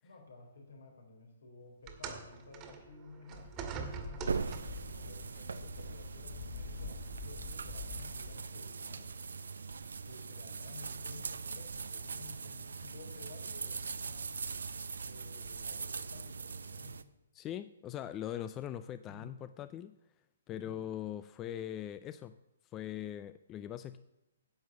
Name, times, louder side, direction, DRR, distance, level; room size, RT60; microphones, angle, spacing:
voice 1, 0.0-3.5 4.0-9.1 10.0-14.3 15.0-17.0 19.1-19.3, left 3 dB, 75° left, 1 dB, 4.2 m, -53 dB
sound 1, 1.9-4.9 5.9-6.1 6.9-7.0, right 5 dB, 25° right, 1.7 m, -44 dB
sound 2, 3.3-8.3, left 4 dB, 40° left, 2.4 m, -46 dB
sound 3, 4.3-17.0, right 5 dB, 80° right, 0.6 m, -41 dB
voice 2, 17.4-20.0 20.5-22.4 22.7-24.0, left 11 dB, 20° left, 12 dB, 0.4 m, -41 dB
10.5 x 7.8 x 6.8 m, 0.91 s
hypercardioid pair, 140°, 0 cm